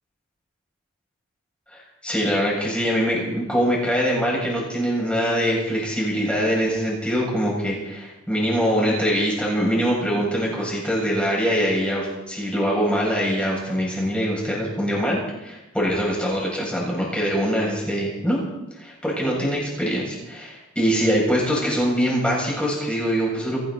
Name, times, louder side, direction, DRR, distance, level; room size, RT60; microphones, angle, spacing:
voice 1, 1.7-18.4 18.8-23.7, equal, 5° left, -4 dB, 7.4 m, -23 dB
30.0 x 11.0 x 4.2 m, 0.97 s
head